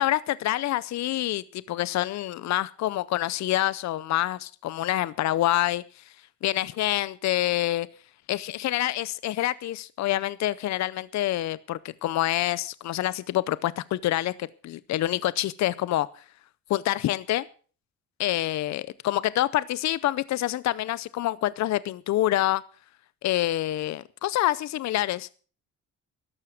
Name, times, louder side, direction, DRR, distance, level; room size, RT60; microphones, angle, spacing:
voice 1, 0.0-6.0 6.4-7.9 8.3-16.1 16.7-17.5 18.2-22.6 23.2-25.3, left 14 dB, 65° left, 19 dB, 0.6 m, -27 dB
13.0 x 12.0 x 5.9 m, 0.41 s
cardioid pair, 90°, 30 cm